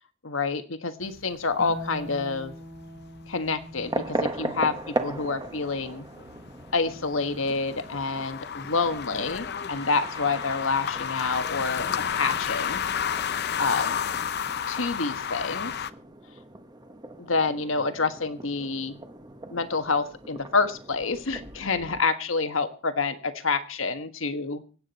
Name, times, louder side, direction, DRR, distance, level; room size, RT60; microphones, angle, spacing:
voice 1, 0.2-2.5 3.3-6.1 6.7-12.8 13.6-14.0 14.7-15.7 17.2-19.0 19.5-24.6, left 4 dB, 70° left, 9 dB, 1.5 m, -28 dB
sound 1, 1.0-15.9, left 8 dB, 55° left, 0.7 m, -33 dB
Harp, 1.6-8.1 9.7-10.7, equal, 60° right, 6.0 m, -45 dB
sound 2, 3.8-22.0, right 2 dB, 20° right, 1.4 m, -39 dB
25.0 x 8.8 x 4.2 m, 0.38 s
head